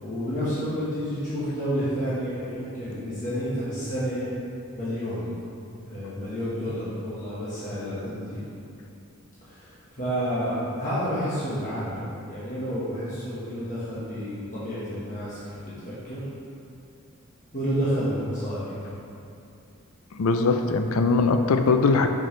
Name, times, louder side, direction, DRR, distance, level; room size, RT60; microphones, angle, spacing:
voice 1, 0.0-4.3 4.7-5.3 5.9-8.5 9.4-15.4 15.8-16.2 17.5-19.1, equal, 35° left, -11 dB, 1.3 m, -30 dB
voice 2, 20.1-22.1, left 4 dB, 70° left, 6 dB, 0.4 m, -21 dB
6.4 x 6.2 x 3.2 m, 2.6 s
head